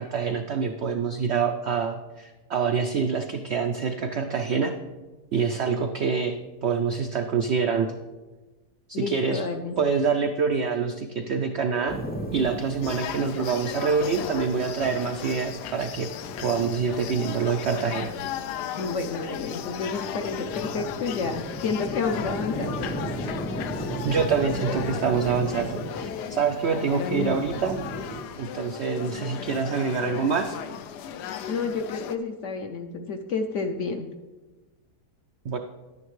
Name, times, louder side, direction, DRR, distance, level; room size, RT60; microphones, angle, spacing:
voice 1, 0.0-4.7 5.3-7.9 8.9-9.4 9.8-12.0 12.3-16.1 16.4-18.1 24.0-27.8 28.4-30.6 35.4-35.6, right 5 dB, 80° right, 5 dB, 0.6 m, -26 dB
voice 2, 8.9-9.8 18.8-22.9 31.5-34.1, left 4 dB, 65° left, 5 dB, 0.8 m, -30 dB
sound 1, 11.9-28.3, right 1 dB, 15° left, 0.3 m, -37 dB
sound 2, 12.8-32.2, left 8 dB, 85° left, 1.2 m, -36 dB
10.5 x 9.8 x 3.1 m, 1.2 s
omnidirectional pair, 1.7 m